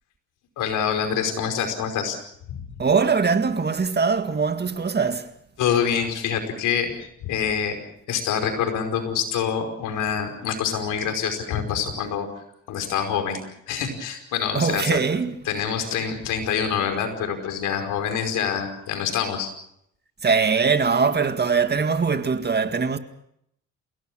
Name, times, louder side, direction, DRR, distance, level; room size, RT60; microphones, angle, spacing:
voice 1, 0.6-2.2 2.5-2.6 5.6-7.8 8.1-12.3 12.7-15.0 15.5-19.5, left 7 dB, 90° left, 5.2 m, -26 dB
voice 2, 2.8-5.3 14.5-15.3 20.2-23.0, right 5 dB, 35° right, 2.0 m, -22 dB
28.5 x 18.0 x 6.3 m
cardioid pair, 90°, 30 cm